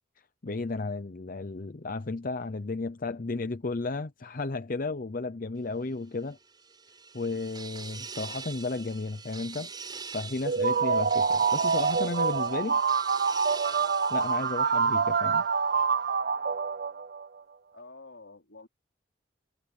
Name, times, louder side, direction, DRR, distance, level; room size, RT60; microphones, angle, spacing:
voice 1, 0.4-6.4 7.1-9.7 10.1-12.8 13.8-15.4, left 3 dB, 45° left, 0.6 m, -33 dB
sound 1, 6.3-15.4, right 5 dB, 20° right, 5.2 m, -43 dB
sound 2, 10.5-17.3, right 5 dB, 50° right, 0.5 m, -26 dB
voice 2, 17.7-18.7, left 3 dB, 70° left, 4.1 m, -48 dB
head